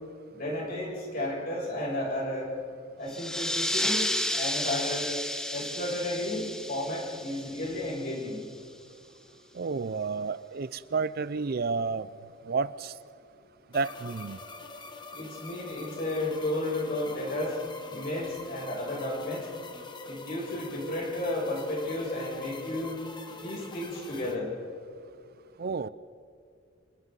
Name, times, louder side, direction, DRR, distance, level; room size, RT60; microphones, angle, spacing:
voice 1, 0.3-2.5 3.0-5.1 5.5-8.4 15.1-17.6 17.9-19.5 20.1-22.9 23.4-24.5, left 1 dB, 50° left, -4 dB, 7.5 m, -33 dB
sound 1, 3.1-8.3, left 1 dB, 5° left, 0.9 m, -32 dB
voice 2, 9.5-12.1 12.5-12.9 13.7-14.4 25.6-25.9, right 4 dB, 50° right, 15 dB, 0.5 m, -30 dB
sound 2, 13.7-24.4, left 3 dB, 25° left, 1.3 m, -44 dB
29.5 x 29.0 x 4.0 m, 2.4 s
head